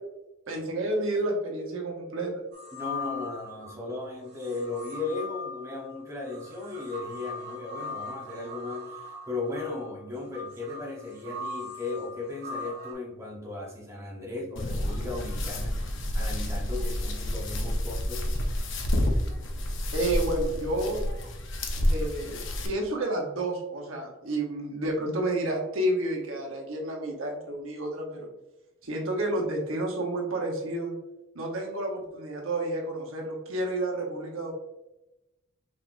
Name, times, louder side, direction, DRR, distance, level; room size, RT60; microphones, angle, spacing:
voice 1, 0.5-2.4 19.9-21.0 21.9-28.3 28.8-31.0 31.3-34.5, right 1 dB, 75° right, 0 dB, 1.0 m, -30 dB
sound 1, 2.5-3.8 4.3-12.9, left 2 dB, 50° right, 1.3 m, -40 dB
voice 2, 2.7-18.3, left 3 dB, 15° right, -4 dB, 0.9 m, -36 dB
sound 2, 14.6-22.7, left 1 dB, 60° left, 0.7 m, -29 dB
5.6 x 3.4 x 2.5 m, 0.95 s
head